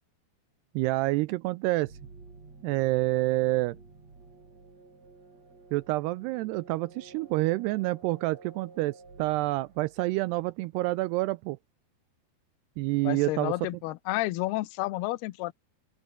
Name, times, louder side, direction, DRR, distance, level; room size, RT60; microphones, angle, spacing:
voice 1, 0.8-1.9 2.6-3.8 5.7-11.6 12.8-13.5, right 20 dB, 85° right, 2.4 m, -28 dB
sound 1, 1.8-10.5, right 3 dB, 35° right, 7.2 m, -52 dB
voice 2, 13.0-15.5, left 19 dB, 75° left, 2.7 m, -31 dB
open air
omnidirectional pair, 5.2 m